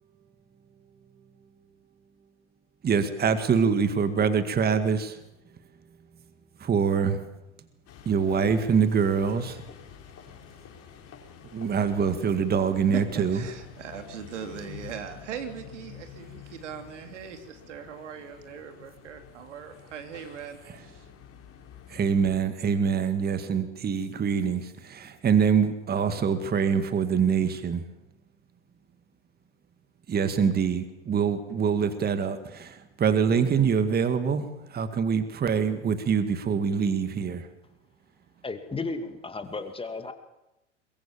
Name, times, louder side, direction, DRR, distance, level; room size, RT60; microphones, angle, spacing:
voice 1, 2.8-5.2 6.6-7.2 8.1-9.6 11.5-13.4 20.7-20.8 21.9-27.8 30.1-37.5, right 6 dB, 25° right, 10 dB, 2.0 m, -25 dB
sound 1, 7.9-22.4, left 9 dB, 40° left, 5.0 m, -48 dB
voice 2, 12.9-21.1, right 8 dB, 75° right, 6 dB, 3.3 m, -39 dB
voice 3, 38.4-40.1, left 3 dB, 15° left, 8 dB, 2.3 m, -34 dB
22.5 x 22.0 x 7.4 m, 0.92 s
hypercardioid pair, 90°, 36 cm